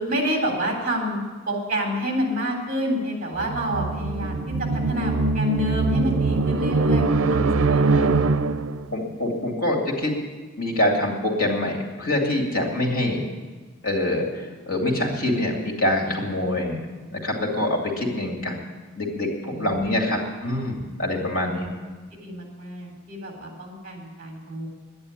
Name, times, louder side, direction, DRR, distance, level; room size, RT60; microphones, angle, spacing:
voice 1, 0.0-7.0 7.3-8.1 19.5-20.7 21.4-21.5 22.2-24.7, equal, 40° right, 1 dB, 3.5 m, -29 dB
sound 1, 3.4-8.9, right 3 dB, 80° right, 0.6 m, -22 dB
voice 2, 8.9-10.1 10.6-13.2 13.8-16.8 17.1-18.5 19.0-20.7 21.0-21.7, left 1 dB, 80° left, 0 dB, 2.6 m, -25 dB
11.0 x 9.6 x 9.8 m, 1.4 s
head